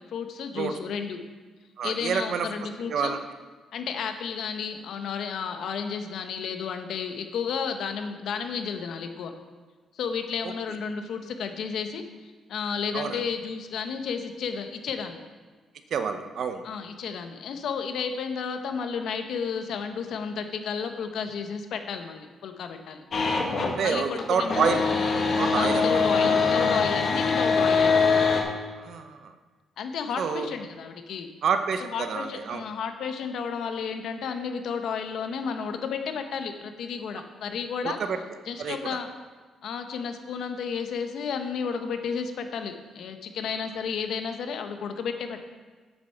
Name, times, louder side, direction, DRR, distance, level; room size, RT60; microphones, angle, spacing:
voice 1, 0.1-1.2 1.8-3.2 3.7-9.3 9.9-15.2 16.6-23.0 23.8-24.8 25.5-28.1 29.8-31.3 31.8-38.0 38.5-39.1 39.6-45.4, left 6 dB, 70° left, 6 dB, 1.1 m, -32 dB
voice 2, 1.8-2.5 2.9-3.2 10.4-10.5 12.9-13.2 15.9-16.6 23.8-24.8 25.4-26.0 28.8-29.3 30.2-30.5 31.4-32.6 37.8-38.2 38.6-39.0, right 6 dB, 65° right, 8 dB, 0.9 m, -28 dB
sound 1, 23.1-23.8 24.1-28.4, left 4 dB, 50° left, 1.7 m, -23 dB
8.1 x 7.5 x 5.9 m, 1.4 s
cardioid pair, 90°, 0 cm